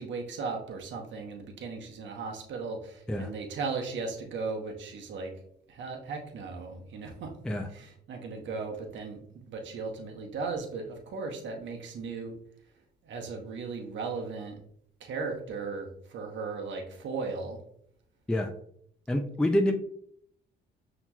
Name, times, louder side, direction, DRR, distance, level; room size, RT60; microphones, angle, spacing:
voice 1, 0.0-5.3 5.7-7.3 7.7-12.3 13.0-14.6 15.0-17.6, right 4 dB, 70° right, 2 dB, 0.9 m, -37 dB
voice 2, 19.1-19.7, left 1 dB, 5° left, 5 dB, 0.3 m, -27 dB
5.7 x 2.9 x 2.3 m, 0.67 s
cardioid pair, 90°, 20 cm